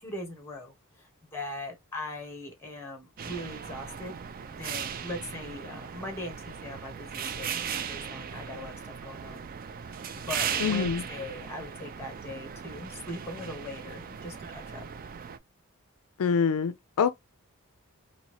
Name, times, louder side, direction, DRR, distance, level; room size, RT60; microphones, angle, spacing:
voice 1, 0.0-4.1 4.5-9.4 9.8-14.9, left 1 dB, 10° left, 1.5 m, -40 dB
sound 1, 3.2-15.4, right 7 dB, 40° right, 0.4 m, -37 dB
voice 2, 10.6-11.0 16.2-17.1, left 6 dB, 65° left, 0.4 m, -25 dB
4.1 x 2.7 x 3.1 m
head